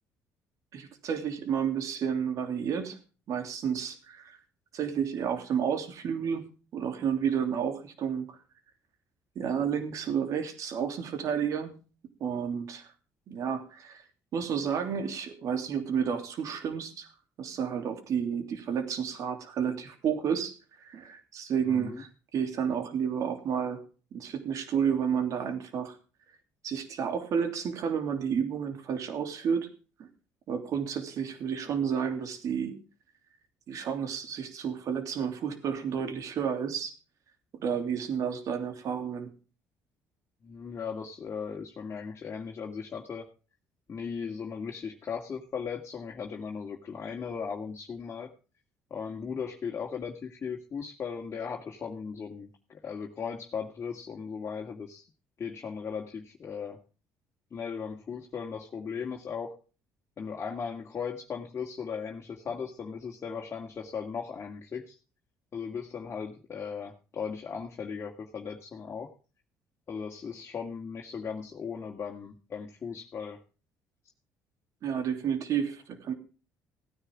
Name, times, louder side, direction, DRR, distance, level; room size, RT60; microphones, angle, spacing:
voice 1, 0.7-3.0 3.3-4.4 4.7-6.4 6.7-8.4 9.3-11.7 12.2-12.9 13.3-14.0 14.3-17.1 17.4-23.8 24.1-26.0 26.6-29.7 30.0-30.1 30.5-32.8 33.7-36.9 37.5-39.3 74.8-76.1, right 7 dB, 60° right, 7 dB, 3.0 m, -31 dB
voice 2, 21.7-22.0 40.4-43.3 43.9-48.3 48.9-55.1 55.4-56.8 57.5-59.5 60.2-65.0 65.5-69.1 69.9-73.4, left 6 dB, 40° left, 0 dB, 2.1 m, -37 dB
17.5 x 9.9 x 3.6 m, 0.34 s
supercardioid pair, 70°, 6 cm